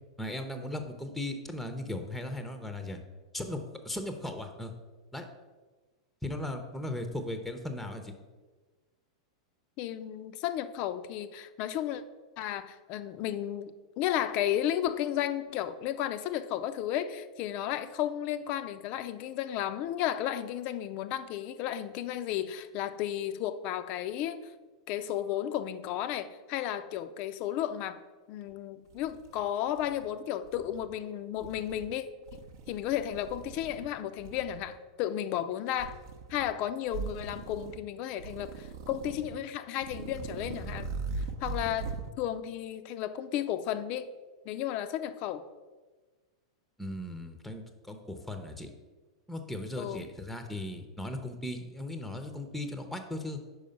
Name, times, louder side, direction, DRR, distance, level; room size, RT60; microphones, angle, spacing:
voice 1, 0.2-3.0 3.3-3.6 3.8-4.7 5.1-5.3 6.2-8.1 46.8-48.7 49.3-53.4, left 1 dB, ahead, 6 dB, 0.6 m, -37 dB
voice 2, 9.8-12.0 12.4-24.5 24.9-28.0 28.3-32.0 32.3-32.4 32.7-36.0 36.3-40.9 41.4-41.9 42.2-44.1 44.5-45.4 49.8-50.1, left 11 dB, 40° left, 12 dB, 0.4 m, -33 dB
sound 1, 28.5-28.6 28.9-30.1 30.4-30.9 31.3-31.9 32.3-33.9 34.2-34.7 35.7-36.5 36.9-37.8 38.2-39.4 39.8-42.1, right 4 dB, 55° right, 0.6 m, -40 dB
5.5 x 4.9 x 5.3 m, 1.3 s
figure-of-eight pair, 95°, 3 cm